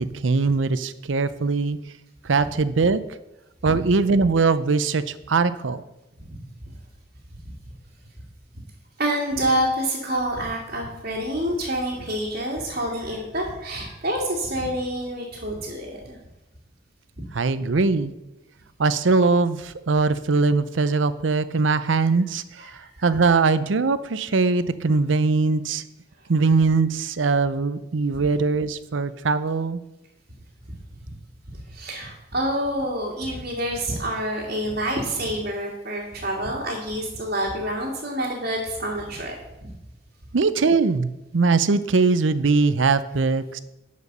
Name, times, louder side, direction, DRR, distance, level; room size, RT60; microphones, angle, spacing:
voice 1, 0.0-1.8 2.2-3.0 3.6-5.8 17.3-18.1 18.8-22.7 23.0-25.8 26.3-29.8 40.3-43.6, right 4 dB, 90° right, 14 dB, 0.6 m, -21 dB
voice 2, 9.0-16.2 17.2-17.3 22.6-22.9 28.2-28.3 31.7-39.7, right 1 dB, 50° right, -5 dB, 2.2 m, -27 dB
11.0 x 5.2 x 6.7 m, 0.95 s
head